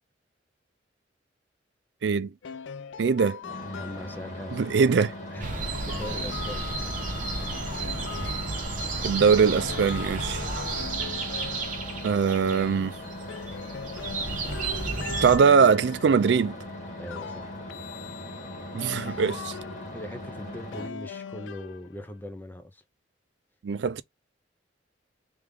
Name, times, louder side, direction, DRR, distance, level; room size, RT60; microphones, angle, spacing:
voice 1, 2.0-2.3 3.0-3.4 4.5-5.1 9.0-10.4 12.0-13.0 15.2-16.6 18.7-19.6 23.6-24.0, right 5 dB, 65° right, 0.4 m, -22 dB
sound 1, 2.4-4.4 5.7-8.9 9.3-12.4 12.8-16.3 17.0-20.2 20.7-22.2, left 7 dB, 80° left, 0.4 m, -41 dB
sound 2, 3.4-20.9, left 1 dB, 45° left, 2.3 m, -40 dB
voice 2, 3.7-5.0 5.3-6.7 17.0-17.5 19.0-19.2 19.9-22.8, equal, 10° left, 0.7 m, -40 dB
sound 3, 5.4-15.4, right 3 dB, 45° right, 1.0 m, -33 dB
3.5 x 3.4 x 3.6 m
head